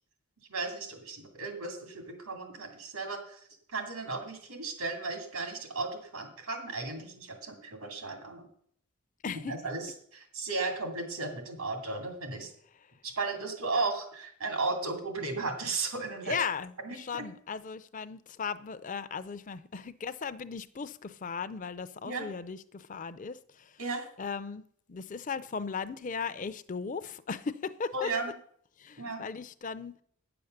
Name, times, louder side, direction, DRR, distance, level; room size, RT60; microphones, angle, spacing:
voice 1, 0.5-3.4 3.7-8.5 9.5-12.5 13.0-16.3 16.8-17.2 22.0-22.3 23.8-24.1 27.9-28.3 29.0-29.2, right 3 dB, 85° right, 2.5 m, -35 dB
voice 2, 9.2-9.5 16.2-23.8 24.2-24.6 24.9-28.1 28.8-29.9, left 5 dB, 35° left, 0.5 m, -37 dB
9.6 x 6.9 x 6.5 m
head